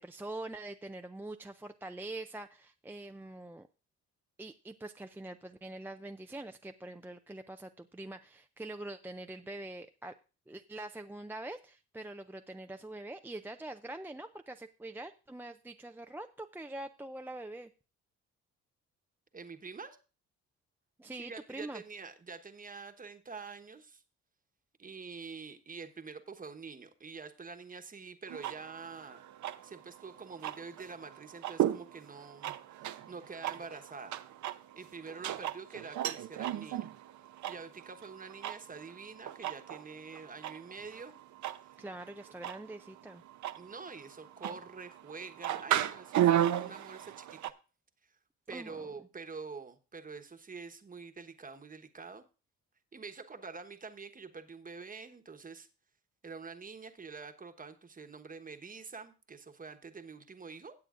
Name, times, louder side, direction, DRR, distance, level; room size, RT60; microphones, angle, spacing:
voice 1, 0.0-3.7 4.4-10.1 10.5-17.7 21.0-21.8 41.8-43.2 48.5-48.9, right 2 dB, 5° right, 6 dB, 0.4 m, -44 dB
voice 2, 19.3-20.0 21.2-24.0 24.8-29.2 29.6-34.2 34.7-36.9 37.5-41.2 43.6-47.5 48.5-52.2 52.9-55.7 56.2-60.7, right 4 dB, 30° right, 7 dB, 1.2 m, -46 dB
sound 1, 28.3-47.5, right 12 dB, 75° right, 0.7 m, -36 dB
17.0 x 7.7 x 2.5 m, 0.33 s
cardioid pair, 90°, 30 cm